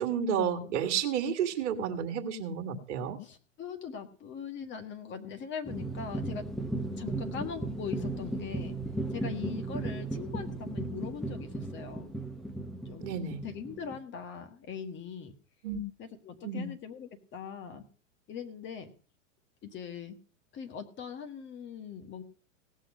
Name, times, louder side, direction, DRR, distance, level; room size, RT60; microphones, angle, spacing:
voice 1, 0.0-3.2 7.2-7.3 9.7-9.9 13.0-13.4 15.6-15.8 16.4-16.7, right 7 dB, 60° right, 6 dB, 1.8 m, -31 dB
voice 2, 3.2-6.4 7.0-8.7 9.1-12.1 12.8-13.1 13.4-15.3 16.0-17.8 18.3-18.9 19.6-20.1 20.5-22.2, left 6 dB, 30° left, 7 dB, 1.6 m, -41 dB
sound 1, 5.6-14.0, right 2 dB, ahead, 1.0 m, -36 dB
17.5 x 6.4 x 6.3 m, 0.40 s
hypercardioid pair, 115°, 40 cm